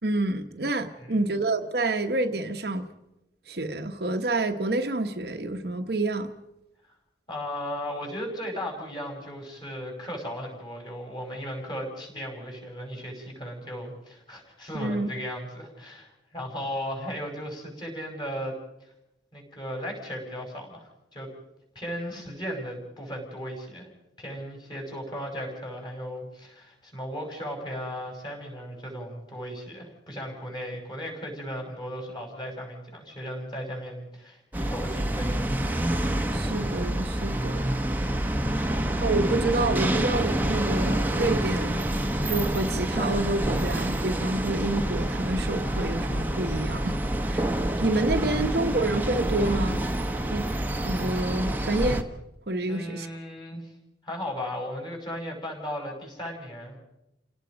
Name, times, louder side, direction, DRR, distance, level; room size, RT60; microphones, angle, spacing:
voice 1, 0.0-2.8 3.5-6.3 14.7-15.1 36.3-37.7 39.0-41.9 42.3-47.0 47.3-47.5 47.8-49.8 50.3-50.5 50.8-52.1 52.5-53.1, right 2 dB, 55° right, 1.1 m, -28 dB
voice 2, 7.3-18.6 19.3-21.3 21.7-23.9 24.2-35.7 38.3-38.7 48.0-48.5 52.7-53.7 54.0-56.8, equal, 25° left, 5.8 m, -36 dB
sound 1, 34.5-52.0, right 1 dB, 10° right, 1.2 m, -27 dB
29.0 x 17.5 x 5.2 m
head